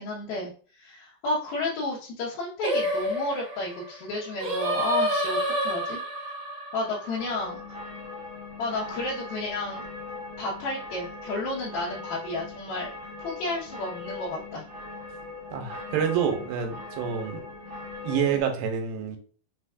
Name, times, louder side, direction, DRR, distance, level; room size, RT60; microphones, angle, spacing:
voice 1, 0.0-6.0 6.7-7.6 8.6-9.9 10.1-12.9 13.2-14.6, left 2 dB, 85° left, -7 dB, 2.9 m, -32 dB
Singing, 2.6-7.9, equal, 35° right, 2.1 m, -29 dB
sound 1, 7.2-18.4, left 3 dB, 70° right, 1.2 m, -40 dB
voice 2, 15.5-17.5 18.0-19.2, right 7 dB, 85° right, 5 dB, 2.5 m, -27 dB
6.1 x 3.4 x 2.4 m, 0.42 s
omnidirectional pair, 4.1 m